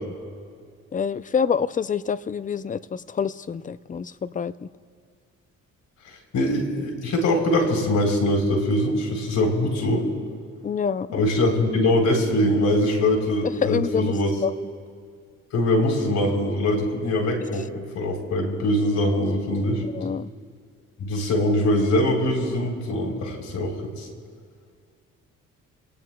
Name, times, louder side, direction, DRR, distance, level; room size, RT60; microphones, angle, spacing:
voice 1, 0.9-4.7 10.6-11.3 13.6-14.1 14.4-14.5 19.9-20.3, left 6 dB, 25° left, 15 dB, 0.5 m, -26 dB
voice 2, 6.1-10.1 11.1-14.3 15.5-19.8 21.0-24.1, left 1 dB, 70° left, 2 dB, 3.8 m, -23 dB
27.5 x 18.5 x 2.3 m, 2.2 s
cardioid pair, 90°, 30 cm